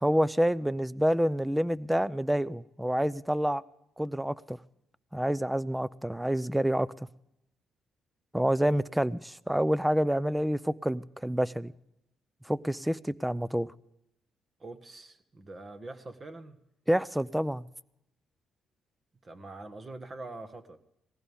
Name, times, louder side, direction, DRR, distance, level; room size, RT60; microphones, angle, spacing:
voice 1, 0.0-3.6 4.0-4.6 5.1-7.1 8.3-11.7 12.4-13.7 16.9-17.7, equal, 5° right, 19 dB, 0.5 m, -28 dB
voice 2, 14.6-16.6 19.2-20.8, right 2 dB, 35° right, 9 dB, 1.5 m, -44 dB
19.0 x 15.5 x 3.5 m, 0.82 s
cardioid pair, 90°, 0 cm